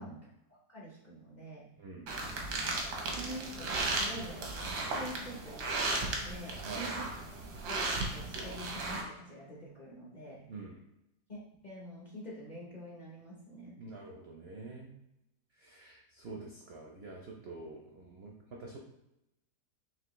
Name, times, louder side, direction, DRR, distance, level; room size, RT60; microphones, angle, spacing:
voice 1, 0.0-1.7 3.1-6.0 6.2-7.1 7.7-10.5 11.3-13.8, equal, 40° left, -4 dB, 0.6 m, -46 dB
voice 2, 1.8-2.1 6.6-7.0 10.5-10.8 13.7-14.9 15.6-18.8, right 3 dB, 65° right, -1 dB, 0.6 m, -47 dB
sound 1, 2.1-9.0, right 2 dB, 90° right, 1.4 m, -35 dB
5.5 x 2.7 x 3.0 m, 0.86 s
omnidirectional pair, 1.7 m